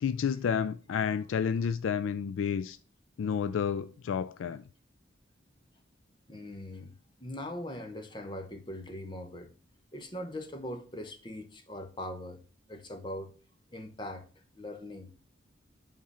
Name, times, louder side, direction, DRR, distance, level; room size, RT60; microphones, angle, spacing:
voice 1, 0.0-2.8 3.2-4.6, left 7 dB, 85° left, 0.3 m, -30 dB
voice 2, 6.3-6.9 7.2-9.5 9.9-12.4 12.7-13.3 13.7-14.3 14.5-15.2, left 1 dB, 25° left, 0.9 m, -41 dB
8.5 x 3.7 x 5.6 m
head